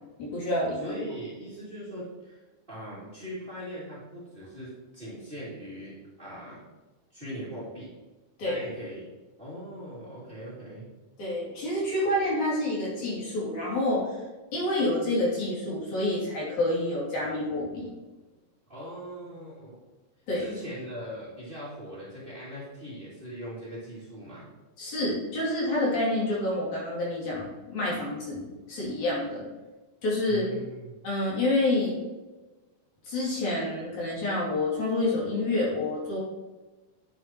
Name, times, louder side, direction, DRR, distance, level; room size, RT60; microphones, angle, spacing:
voice 1, 0.2-0.9 8.4-8.6 11.2-14.1 14.5-17.9 20.3-20.5 24.8-28.4 28.7-29.4 30.0-30.4 31.0-32.0 33.1-36.2, left 1 dB, 70° left, -6 dB, 4.2 m, -28 dB
voice 2, 0.8-2.4 2.7-6.6 7.1-7.9 8.4-9.1 9.4-10.9 18.7-19.8 20.4-24.5 30.3-30.9, equal, 20° right, -8 dB, 2.5 m, -40 dB
11.0 x 7.6 x 3.0 m, 1.2 s
omnidirectional pair, 3.4 m